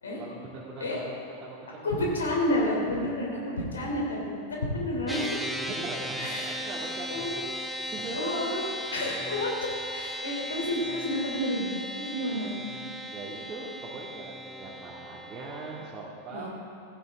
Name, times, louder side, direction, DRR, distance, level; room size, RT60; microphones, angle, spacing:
voice 1, 0.2-2.1 5.6-7.4 7.9-8.4 13.1-16.5, right 3 dB, 25° right, -7 dB, 2.2 m, -40 dB
voice 2, 1.8-5.7 6.2-6.6 7.1-7.4 8.1-8.6 8.9-11.7 11.9-12.5 16.3-16.5, left 1 dB, 70° left, -1 dB, 3.3 m, -30 dB
sound 1, 5.1-15.9, equal, ahead, 1.1 m, -37 dB
16.0 x 15.0 x 3.7 m, 2.6 s
figure-of-eight pair, 90°, 0 cm